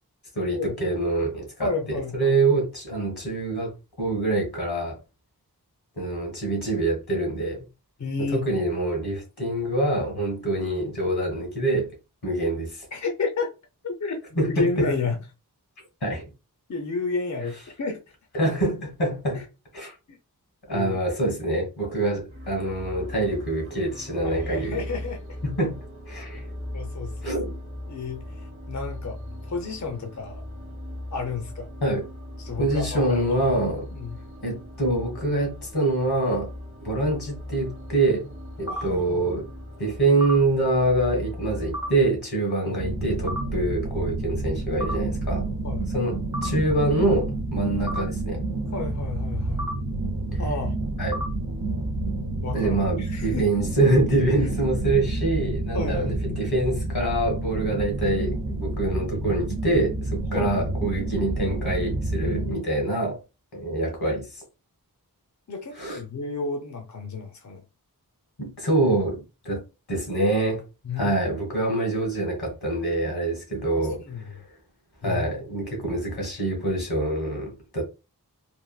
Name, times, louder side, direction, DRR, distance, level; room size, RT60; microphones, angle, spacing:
voice 1, 0.3-5.0 6.0-7.6 8.2-11.9 12.2-12.9 14.4-14.9 16.0-16.2 18.3-19.4 19.7-19.9 20.7-24.9 25.4-25.8 26.1-26.4 27.2-27.5 31.8-32.1 32.6-33.9 34.4-36.5 36.8-38.3 38.6-39.5 39.8-45.5 45.9-48.4 50.3-50.4 51.0-51.2 52.5-63.2 63.5-64.4 65.8-66.0 68.4-69.6 69.9-70.6 70.9-74.5 75.0-77.8, right 2 dB, 85° left, 1.6 m, -25 dB
voice 2, 1.6-2.3 8.0-8.5 12.9-13.5 13.8-15.2 16.7-18.0 19.3-19.4 20.1-20.2 20.7-21.0 24.2-25.4 26.7-27.5 27.9-29.2 29.5-30.4 31.1-31.7 32.4-33.4 33.9-34.2 38.7-39.4 42.6-42.8 45.6-45.9 48.7-49.7 50.4-50.7 52.4-53.5 54.4-54.5 55.7-56.3 60.3-60.5 62.2-62.7 65.5-67.6 70.8-71.2 73.8-74.2 75.0-75.3, left 4 dB, 50° left, 0.6 m, -31 dB
sound 1, 22.3-42.1, left 1 dB, 35° right, 0.9 m, -38 dB
sound 2, 38.7-38.8 40.2-40.3 41.7-41.9 43.3-43.4 44.8-44.9 46.3-46.5 47.9-48.0 49.6-49.7 51.1-51.3, equal, 10° right, 0.4 m, -30 dB
sound 3, 42.8-62.5, right 2 dB, 75° right, 0.7 m, -29 dB
3.5 x 2.4 x 2.3 m
wide cardioid pair, 40°, 38 cm